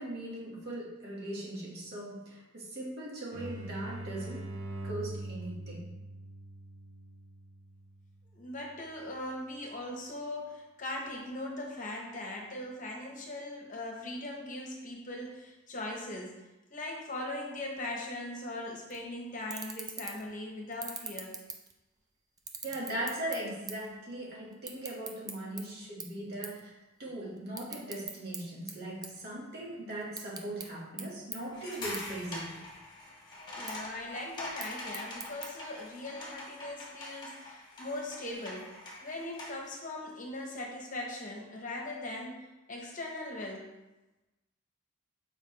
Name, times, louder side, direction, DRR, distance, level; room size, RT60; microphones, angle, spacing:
voice 1, 0.0-4.5 4.8-5.9 22.6-32.6, right 1 dB, 50° right, -5 dB, 1.9 m, -39 dB
sound 1, 3.3-8.8, right 1 dB, 70° right, 0.8 m, -43 dB
voice 2, 8.3-16.3 16.7-21.4 33.5-38.7 39.0-43.7, left 1 dB, 40° left, 0 dB, 1.0 m, -40 dB
sound 2, 18.9-19.0 19.4-20.3 20.7-22.0 22.4-23.9 24.2-25.6 26.0-26.2 26.4-26.6 27.0-28.4 28.7-29.7 30.0-30.7 31.0-31.1 31.3-31.4 31.9-32.0 32.4-33.0 33.4-33.7 34.4-35.5, right 5 dB, 15° right, 0.4 m, -41 dB
sound 3, 31.5-39.7, left 1 dB, 20° left, 1.6 m, -44 dB
7.2 x 4.9 x 3.3 m, 1.0 s
head